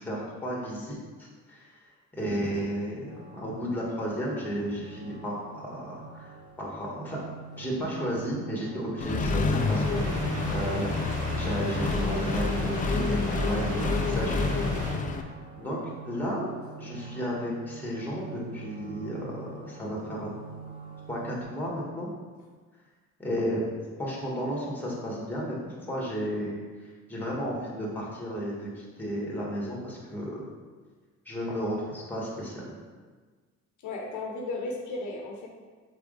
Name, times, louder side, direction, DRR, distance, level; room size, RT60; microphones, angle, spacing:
voice 1, 0.0-1.8 2.1-7.2 7.6-14.5 14.9-15.2 15.6-15.8 16.0-16.5 16.8-20.4 21.1-22.1 23.2-23.6 24.0-30.4 31.2-32.6, equal, 5° left, -4 dB, 1.3 m, -33 dB
sound 1, 3.0-21.4, right 5 dB, 15° right, 0.8 m, -45 dB
Accelerating revving vroom, 9.0-15.2, left 4 dB, 25° left, 0.4 m, -28 dB
sound 2, 9.6-15.0, right 2 dB, 75° right, 1.1 m, -37 dB
voice 2, 33.8-35.5, left 2 dB, 70° left, 0 dB, 0.8 m, -34 dB
4.0 x 3.4 x 3.9 m, 1.4 s
cardioid pair, 90°, 30 cm